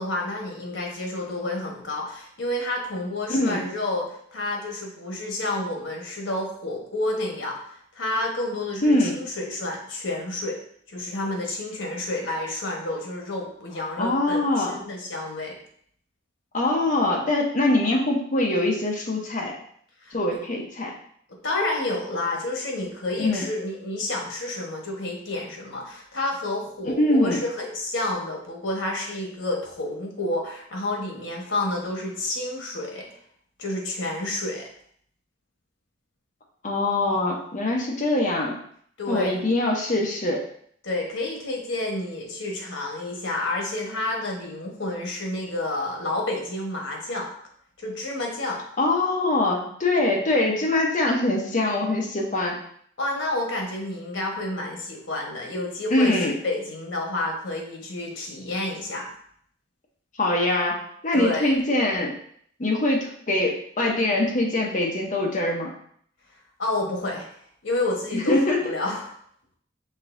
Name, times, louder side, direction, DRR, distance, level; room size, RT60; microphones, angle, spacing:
voice 1, 0.0-7.6 7.9-10.6 10.9-15.6 20.0-20.1 21.3-33.1 33.6-34.7 39.0-39.3 40.8-47.3 47.8-48.6 53.0-59.1 61.1-61.5 66.6-67.3 67.6-68.4 68.6-69.1, left 2 dB, 90° left, 0 dB, 1.2 m, -29 dB
voice 2, 3.3-3.6 8.8-9.2 14.0-14.8 16.5-19.6 20.1-20.9 23.2-23.5 27.0-27.4 36.6-38.6 39.1-40.4 48.8-52.6 55.9-56.3 60.2-62.1 62.6-65.7 68.1-68.7, left 2 dB, 45° left, 0 dB, 0.9 m, -23 dB
5.3 x 3.7 x 2.6 m, 0.63 s
head